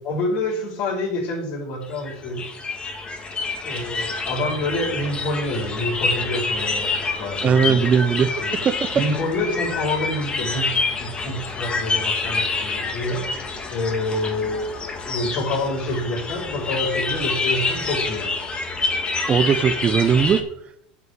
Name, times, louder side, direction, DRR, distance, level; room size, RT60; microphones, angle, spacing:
voice 1, 0.0-2.5 3.6-7.8 8.4-8.6 8.9-13.3 13.7-14.7 15.0-18.3, left 1 dB, 55° left, 0 dB, 5.0 m, -27 dB
sound 1, 1.8-20.4, left 3 dB, 25° left, 2.0 m, -27 dB
voice 2, 7.4-8.9 19.3-20.4, right 7 dB, 30° right, 12 dB, 0.9 m, -19 dB
9.6 x 5.4 x 8.0 m, 0.71 s
hypercardioid pair, 100°, 4 cm